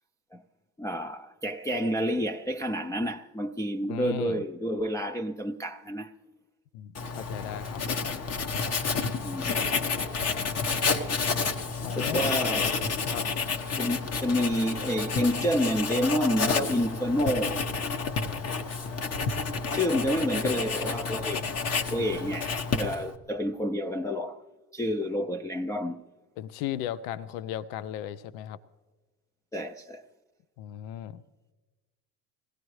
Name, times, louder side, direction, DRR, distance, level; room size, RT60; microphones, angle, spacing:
voice 1, 0.8-6.1 9.2-9.6 11.8-12.7 13.7-17.7 19.7-21.5 21.9-24.4 24.7-26.0 29.5-30.0, equal, 10° left, 0.4 m, -29 dB
voice 2, 3.9-4.4 6.7-8.1 10.4-10.6 11.8-12.2 13.1-13.3 26.4-28.6 30.6-31.2, left 11 dB, 75° left, 0.6 m, -36 dB
Writing, 6.9-23.2, left 5 dB, 40° left, 1.1 m, -30 dB
21.5 x 16.5 x 3.1 m
supercardioid pair, 80°, 40 cm